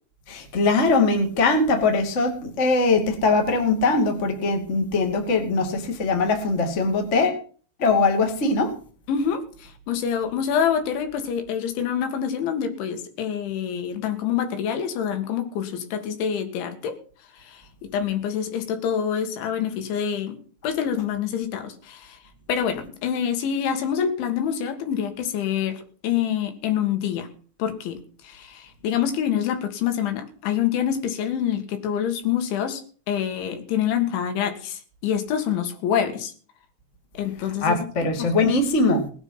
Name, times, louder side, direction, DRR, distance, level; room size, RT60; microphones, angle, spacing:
voice 1, 0.3-7.4 7.8-8.7 37.6-39.0, left 3 dB, 25° left, 3 dB, 1.6 m, -21 dB
voice 2, 9.1-17.0 17.3-20.4 20.6-22.2 22.5-27.3 27.6-32.8 33.1-36.3 37.2-37.9 38.2-38.3, left 8 dB, 75° left, 7 dB, 4.2 m, -26 dB
18.5 x 9.5 x 5.8 m, 0.43 s
omnidirectional pair, 5.5 m